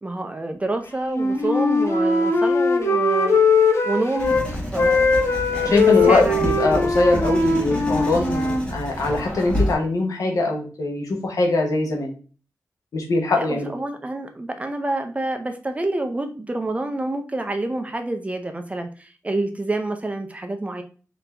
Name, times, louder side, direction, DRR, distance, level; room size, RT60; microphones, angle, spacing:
voice 1, 0.0-3.4 3.8-5.1 5.5-6.4 13.4-20.8, right 2 dB, 25° right, 6 dB, 0.6 m, -28 dB
Wind instrument woodwind instrument, 1.1-4.4 4.7-8.6, left 3 dB, 55° left, 0.8 m, -20 dB
Writing, 4.2-9.7, equal, 15° left, 1.4 m, -29 dB
voice 2, 5.6-12.1 12.9-13.7, left 2 dB, 75° left, 0 dB, 1.1 m, -22 dB
3.8 x 2.9 x 3.3 m, 0.38 s
wide cardioid pair, 105°, 6 cm